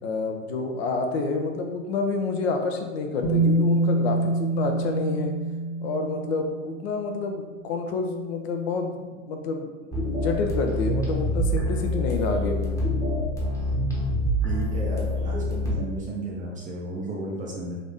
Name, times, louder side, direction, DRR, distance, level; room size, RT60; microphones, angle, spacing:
voice 1, 0.0-5.3 5.8-12.8, left 3 dB, 55° left, 4 dB, 0.6 m, -28 dB
Bass guitar, 3.2-7.2 8.3-8.4, right 2 dB, 85° left, 1.2 m, -26 dB
sound 1, 9.9-15.7, equal, 10° left, 0.9 m, -26 dB
voice 2, 14.4-17.8, right 2 dB, 20° right, -2 dB, 0.6 m, -33 dB
3.9 x 2.6 x 3.4 m, 1.3 s
hypercardioid pair, 95°, 39 cm